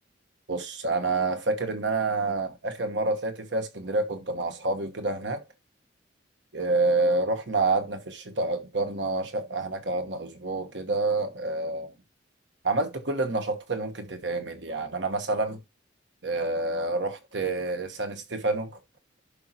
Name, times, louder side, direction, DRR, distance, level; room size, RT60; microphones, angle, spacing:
voice 1, 0.5-5.4 6.5-11.9 12.6-15.6 16.2-18.7, right 3 dB, 70° right, 1.2 m, -28 dB
11.5 x 5.0 x 2.8 m
head